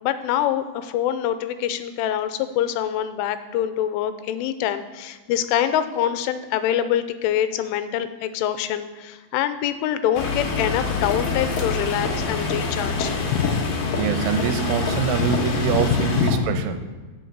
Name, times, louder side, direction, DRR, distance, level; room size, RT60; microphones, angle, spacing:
voice 1, 0.0-13.6 15.2-15.4 15.7-16.7, left 10 dB, 90° left, 11 dB, 3.1 m, -25 dB
sound 1, 10.1-16.3, left 4 dB, 60° left, 2.6 m, -26 dB
voice 2, 14.0-16.8, right 8 dB, 80° right, 8 dB, 3.3 m, -24 dB
8.5 x 7.1 x 8.0 m, 1.3 s
omnidirectional pair, 5.5 m